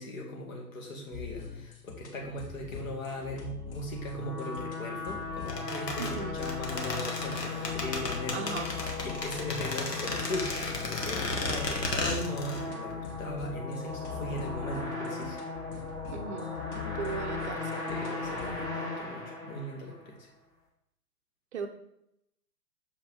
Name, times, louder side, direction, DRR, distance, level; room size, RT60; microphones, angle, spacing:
voice 1, 0.0-8.6 8.8-15.4 16.7-17.3 17.9-20.3, left 1 dB, 55° left, 0 dB, 2.1 m, -39 dB
sound 1, 1.1-18.7, left 6 dB, 30° left, 1.2 m, -43 dB
sound 2, 3.8-20.1, left 4 dB, 10° left, 0.8 m, -38 dB
sound 3, 5.5-12.6 12.9-13.0, left 2 dB, 75° left, 1.7 m, -34 dB
voice 2, 6.0-6.4 8.3-8.7 16.1-16.5 16.9-17.8 21.5-21.7, right 6 dB, 45° right, 6 dB, 0.7 m, -37 dB
6.7 x 5.2 x 3.9 m, 0.79 s
figure-of-eight pair, 125°, 49 cm